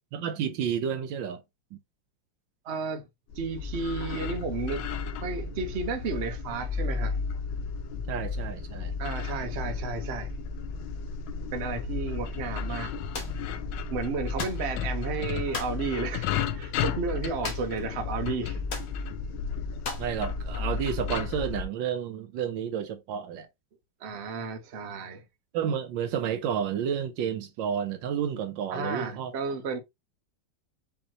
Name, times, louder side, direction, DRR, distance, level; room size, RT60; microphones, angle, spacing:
voice 1, 0.1-1.4 1.7-1.8 8.1-8.9 20.0-23.5 25.5-29.3, right 8 dB, 75° right, 1.3 m, -31 dB
voice 2, 2.6-3.1 3.4-4.8 5.2-7.2 9.0-10.3 11.5-12.9 13.9-18.6 24.0-25.2 28.7-29.8, right 4 dB, 45° right, 0.9 m, -33 dB
sound 1, 3.3-21.6, left 5 dB, 90° left, 1.4 m, -33 dB
sound 2, 13.1-13.4 14.4-14.7 15.5-15.8 17.4-17.8 18.1-18.2 18.7-18.9 19.8-20.1, left 4 dB, 60° left, 1.5 m, -36 dB
5.4 x 2.9 x 2.9 m
omnidirectional pair, 2.1 m